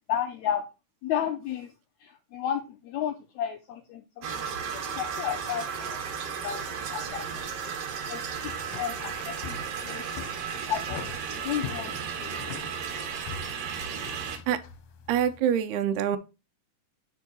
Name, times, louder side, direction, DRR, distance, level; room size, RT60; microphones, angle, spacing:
voice 1, 0.1-0.7 1.0-1.7 2.0-4.4 4.7-7.5 8.1-9.6 9.8-10.0 10.7-12.4, left 9 dB, 85° left, 1.6 m, -33 dB
sound 1, 4.2-14.4, right 7 dB, 65° right, 1.6 m, -34 dB
sound 2, 6.5-15.4, left 7 dB, 65° left, 2.0 m, -44 dB
voice 2, 15.1-16.2, right 9 dB, 80° right, 1.8 m, -25 dB
8.3 x 4.5 x 4.1 m
omnidirectional pair, 4.0 m